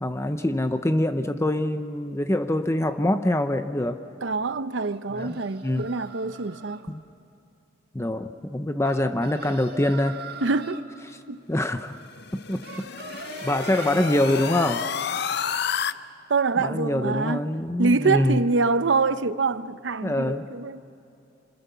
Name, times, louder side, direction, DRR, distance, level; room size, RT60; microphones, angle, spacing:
voice 1, 0.0-4.0 5.2-5.8 6.9-7.0 7.9-10.2 11.5-12.0 12.3-12.9 13.4-14.9 16.6-18.4 20.0-20.5, left 1 dB, 15° left, 0.7 m, -25 dB
voice 2, 4.2-6.8 10.4-10.8 11.3-11.4 16.3-17.4 17.8-20.8, right 4 dB, 80° right, 0.7 m, -25 dB
sound 1, 4.8-6.8 8.8-10.9 12.6-14.8, right 4 dB, 55° right, 1.9 m, -41 dB
sound 2, 12.0-15.9, left 7 dB, 60° left, 0.6 m, -30 dB
29.5 x 26.5 x 7.0 m
head